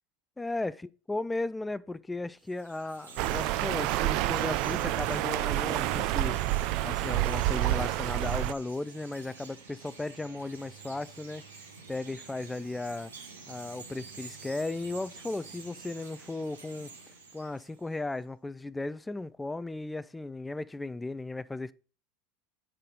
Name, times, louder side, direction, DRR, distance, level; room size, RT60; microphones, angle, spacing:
voice 1, 0.4-0.8 1.1-6.4 6.8-11.4 11.9-13.1 13.5-16.9 17.3-21.7, left 2 dB, 10° left, 0.3 m, -36 dB
Chirp tweet, 2.4-18.0, right 4 dB, 75° right, 1.7 m, -49 dB
sound 1, 3.2-8.5, right 15 dB, 50° right, 0.5 m, -28 dB
8.9 x 6.5 x 3.9 m
figure-of-eight pair, 80°, 0 cm